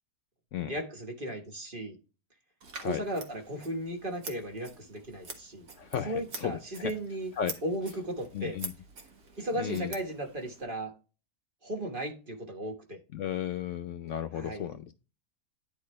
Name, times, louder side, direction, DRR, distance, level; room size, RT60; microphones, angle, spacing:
voice 1, 0.6-2.0 2.8-5.7 6.1-7.3 7.6-8.6 9.4-10.9 11.6-13.0 14.3-14.7, right 1 dB, 35° right, 3 dB, 1.4 m, -36 dB
Scissors, 2.6-10.6, right 4 dB, 75° right, 1.7 m, -46 dB
voice 2, 5.8-6.9 7.4-7.6 8.3-8.7 9.6-9.9 13.1-14.9, left 9 dB, 65° left, 8 dB, 0.8 m, -34 dB
10.5 x 4.2 x 3.1 m, 0.33 s
omnidirectional pair, 1.6 m